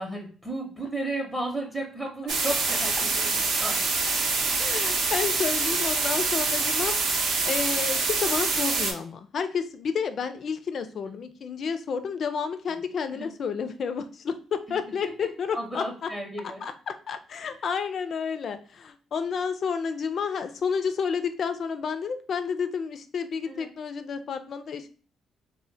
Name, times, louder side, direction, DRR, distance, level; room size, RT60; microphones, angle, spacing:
voice 1, 0.0-3.8 5.7-5.8 11.1-11.2 12.7-12.8 13.1-13.3 14.8-15.1 15.5-16.6 17.4-17.6 23.5-23.7, right 1 dB, 10° right, 1 dB, 0.6 m, -34 dB
sound 1, 2.3-8.9, right 4 dB, 70° right, 0.6 m, -25 dB
voice 2, 4.6-7.0 7.4-16.1 16.6-24.9, left 6 dB, 55° left, 10 dB, 0.3 m, -30 dB
2.1 x 2.1 x 3.8 m, 0.40 s
cardioid pair, 90°, 0 cm